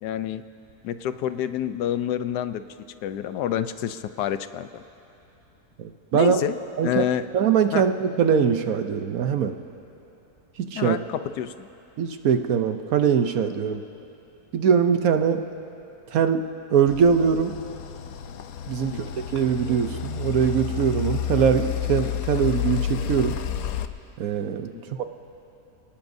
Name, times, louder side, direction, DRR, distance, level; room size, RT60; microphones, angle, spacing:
voice 1, 0.0-0.4 0.8-2.7 3.0-4.8 6.1-6.5 6.8-7.2 7.7-7.8 10.7-11.7 18.8-19.0 24.7-24.8, left 10 dB, 85° left, 11 dB, 1.2 m, -28 dB
voice 2, 5.8-6.4 6.8-7.0 7.3-9.6 10.6-11.0 12.0-13.8 14.5-15.4 16.1-17.5 18.7-23.4 24.2-24.7 25.0-25.1, right 7 dB, 65° right, 7 dB, 1.1 m, -22 dB
sound 1, 16.9-23.9, left 10 dB, 70° left, 1.0 m, -30 dB
28.5 x 19.0 x 2.7 m, 2.9 s
omnidirectional pair, 1.7 m